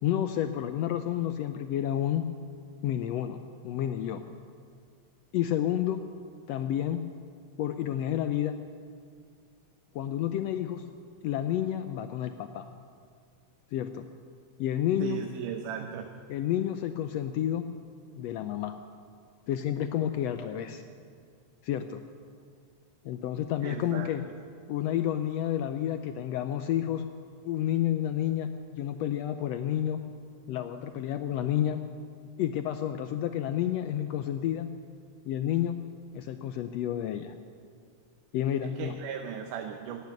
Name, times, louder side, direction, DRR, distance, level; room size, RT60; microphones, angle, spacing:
voice 1, 0.0-2.2 2.8-3.4 3.6-4.2 5.3-6.0 6.5-7.0 7.6-8.6 9.9-10.8 11.2-12.7 13.7-14.1 14.6-15.2 16.3-17.7 18.2-18.7 19.5-20.8 21.6-22.0 23.0-24.2 24.7-27.0 27.4-30.0 30.5-31.8 32.4-34.7 35.2-35.8 36.1-37.3 38.3-39.0, left 11 dB, 85° left, 9 dB, 1.4 m, -30 dB
voice 2, 15.0-16.1 23.6-24.1 38.6-40.0, right 8 dB, 85° right, 5 dB, 2.4 m, -37 dB
16.5 x 9.4 x 9.4 m, 2.2 s
omnidirectional pair, 3.6 m